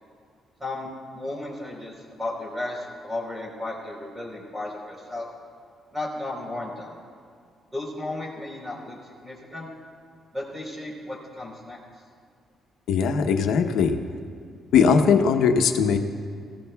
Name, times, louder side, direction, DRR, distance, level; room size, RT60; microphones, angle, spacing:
voice 1, 0.6-5.3 5.9-7.0 7.7-9.7 10.3-11.8, left 2 dB, 10° right, -2 dB, 3.9 m, -34 dB
voice 2, 12.9-14.0 14.7-16.0, left 6 dB, 80° left, 6 dB, 0.9 m, -19 dB
20.5 x 15.5 x 2.3 m, 2.2 s
cardioid pair, 130°, 0 cm